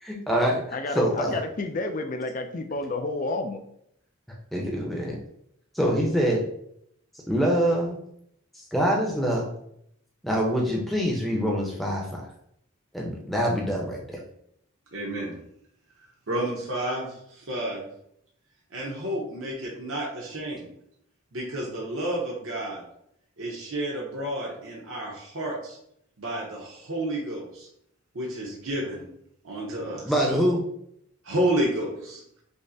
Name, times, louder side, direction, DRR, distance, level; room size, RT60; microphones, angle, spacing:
voice 1, 0.0-0.6 0.9-1.3 4.5-5.2 5.7-6.4 7.3-8.0 8.5-9.5 10.2-12.2 12.9-14.2 30.0-30.6, equal, ahead, -2 dB, 0.6 m, -25 dB
voice 2, 0.7-3.6, left 2 dB, 40° left, 7 dB, 0.3 m, -30 dB
voice 3, 14.9-15.4 16.3-17.8 18.7-20.7 21.3-22.8 23.4-25.8 26.2-27.7 28.1-29.1 29.4-30.1 31.2-32.2, right 1 dB, 70° right, -3 dB, 0.8 m, -30 dB
5.2 x 2.1 x 2.6 m, 0.72 s
head